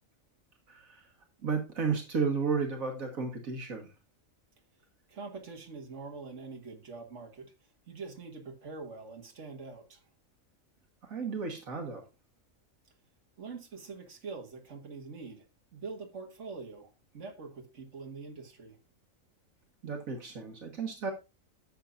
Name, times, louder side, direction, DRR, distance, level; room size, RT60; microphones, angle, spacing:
voice 1, 0.7-1.1 1.4-3.9 11.0-12.0 19.8-21.1, right 5 dB, 80° right, 1.9 m, -33 dB
voice 2, 5.1-7.5 7.9-10.0 13.4-15.5 15.7-18.8, right 4 dB, 60° right, 2.1 m, -44 dB
12.5 x 7.0 x 2.5 m
omnidirectional pair, 1.4 m